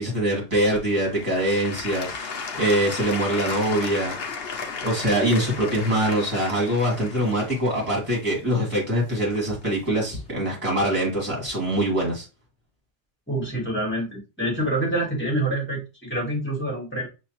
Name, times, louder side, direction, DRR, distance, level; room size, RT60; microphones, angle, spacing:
voice 1, 0.0-4.1 4.8-12.3, right 1 dB, 25° right, -3 dB, 2.4 m, -24 dB
Applause / Crowd, 0.7-9.6 10.2-10.3, left 5 dB, 55° left, 0.9 m, -35 dB
voice 2, 13.3-17.1, right 1 dB, 10° left, -3 dB, 1.8 m, -26 dB
6.2 x 2.6 x 2.9 m, 0.29 s
omnidirectional pair, 1.3 m